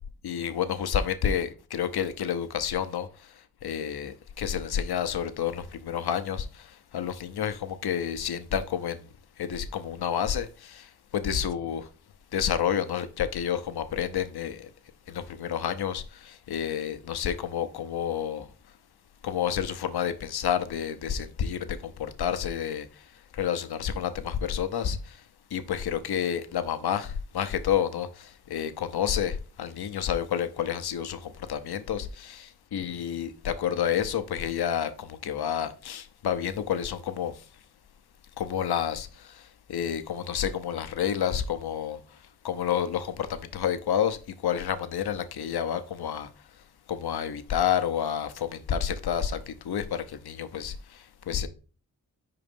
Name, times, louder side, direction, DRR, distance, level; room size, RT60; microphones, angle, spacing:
voice 1, 0.2-3.1 3.6-9.0 9.4-11.9 12.3-14.7 15.1-18.5 19.2-22.9 23.3-25.2 25.5-37.3 38.4-39.4 39.7-42.0 42.4-46.3 46.9-51.5, left 9 dB, 75° left, 0.7 m, -29 dB
4.9 x 3.8 x 5.3 m
cardioid pair, 40°, 38 cm